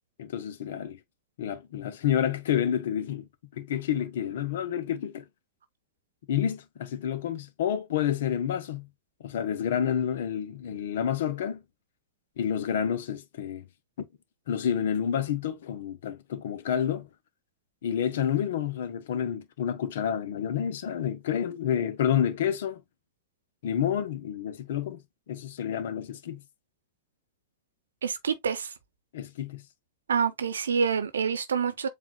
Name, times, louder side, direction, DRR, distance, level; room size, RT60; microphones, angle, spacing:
voice 1, 0.2-1.0 1.4-5.2 6.3-8.9 9.2-11.6 12.4-13.6 14.0-14.1 14.5-17.1 17.8-22.8 23.6-25.0 25.3-26.4 29.1-29.6, left 9 dB, 65° left, 0.7 m, -29 dB
voice 2, 28.0-28.7 30.1-31.9, right 6 dB, 80° right, 0.7 m, -27 dB
7.2 x 2.4 x 2.2 m
hypercardioid pair, 100°, 0 cm